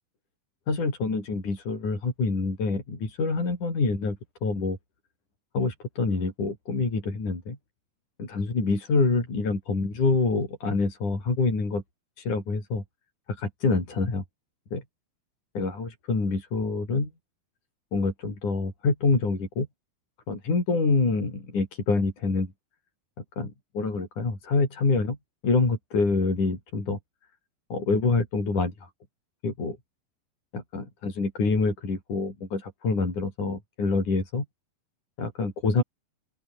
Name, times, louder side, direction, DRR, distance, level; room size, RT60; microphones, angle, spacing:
voice 1, 0.7-4.8 5.5-7.6 8.2-11.8 12.2-12.8 13.3-14.2 14.7-14.8 15.6-17.1 17.9-19.7 20.3-22.5 23.4-25.2 25.4-27.0 27.7-28.9 29.4-29.8 30.5-34.5 35.2-35.8, left 3 dB, 55° left, 8.6 m, -26 dB
open air
omnidirectional pair, 4.2 m